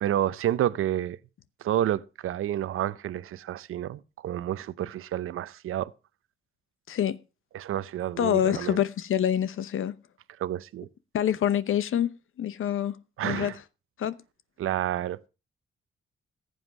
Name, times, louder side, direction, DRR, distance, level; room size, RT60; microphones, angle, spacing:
voice 1, 0.0-1.2 1.6-5.9 7.5-8.8 10.4-10.9 13.2-13.6 14.6-15.2, right 12 dB, 85° right, 0.7 m, -29 dB
voice 2, 8.2-9.9 11.1-13.0 13.2-13.5 14.0-14.2, left 10 dB, 75° left, 0.9 m, -26 dB
15.0 x 8.0 x 6.0 m
cardioid pair, 90°, 21 cm